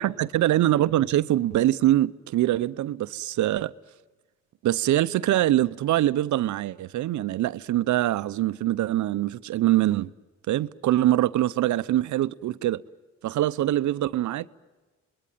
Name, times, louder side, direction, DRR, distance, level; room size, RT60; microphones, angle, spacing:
voice 1, 0.0-3.7 4.6-10.1 10.5-12.8 13.2-14.5, right 14 dB, 75° right, 0.8 m, -23 dB
27.0 x 21.0 x 9.2 m
cardioid pair, 90°, 30 cm